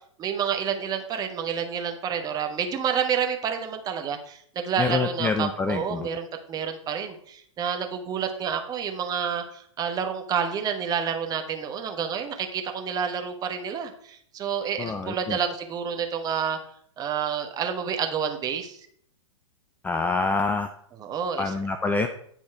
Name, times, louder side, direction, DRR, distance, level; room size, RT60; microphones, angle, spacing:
voice 1, 0.2-16.6 17.0-18.8 21.0-21.5, right 7 dB, 25° right, 5 dB, 1.1 m, -29 dB
voice 2, 4.8-6.1 14.8-15.4 19.8-20.7 21.4-22.1, left 4 dB, 10° left, 8 dB, 0.4 m, -26 dB
9.5 x 4.3 x 4.5 m, 0.64 s
figure-of-eight pair, 105°, 16 cm